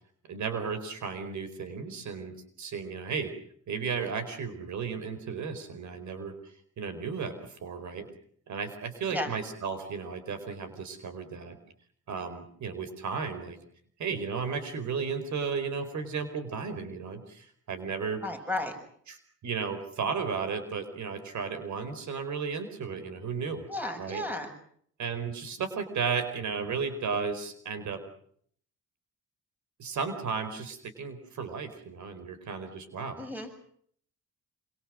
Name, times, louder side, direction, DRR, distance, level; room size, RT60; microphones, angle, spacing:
voice 1, 0.3-2.3 2.6-3.3 3.7-6.3 6.8-7.3 7.6-8.1 8.5-11.6 12.1-13.6 14.0-18.2 19.1-19.2 19.4-23.6 24.0-24.2 25.0-28.0 29.8-33.2, right 5 dB, 70° right, 10 dB, 4.7 m, -34 dB
voice 2, 18.2-18.8 23.7-24.5 33.2-33.5, left 1 dB, 5° right, 6 dB, 6.8 m, -33 dB
27.5 x 26.0 x 6.4 m, 0.62 s
cardioid pair, 125°, 30 cm